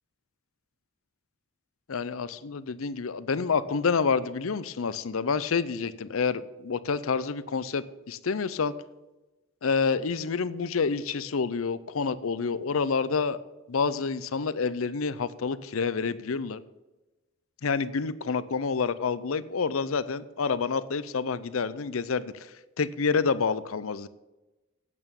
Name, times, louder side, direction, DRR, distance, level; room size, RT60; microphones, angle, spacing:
voice 1, 1.9-8.7 9.6-13.4 13.7-16.6 17.6-22.3 22.8-24.1, left 5 dB, 85° left, 16 dB, 0.6 m, -28 dB
8.8 x 8.5 x 7.0 m, 1.1 s
head